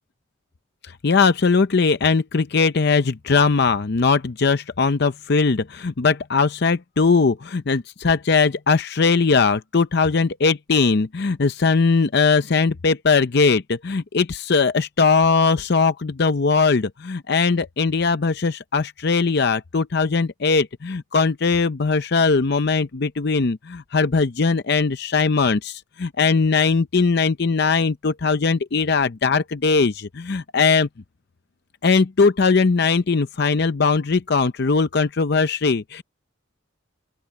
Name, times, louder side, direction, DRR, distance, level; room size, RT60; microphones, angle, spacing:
voice 1, 1.0-30.9 31.8-36.0, left 4 dB, 55° left, 0.6 m, -20 dB
open air
head